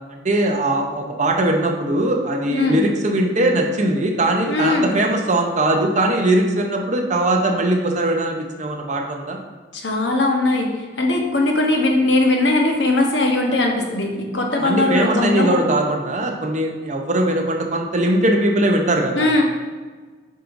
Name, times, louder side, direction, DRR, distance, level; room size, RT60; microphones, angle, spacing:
voice 1, 0.1-9.4 14.6-19.3, right 1 dB, 40° right, 2 dB, 0.7 m, -20 dB
voice 2, 2.5-2.8 4.5-4.9 9.7-15.6 19.1-19.4, left 2 dB, 70° left, 1 dB, 1.1 m, -19 dB
7.4 x 5.1 x 2.6 m, 1.4 s
head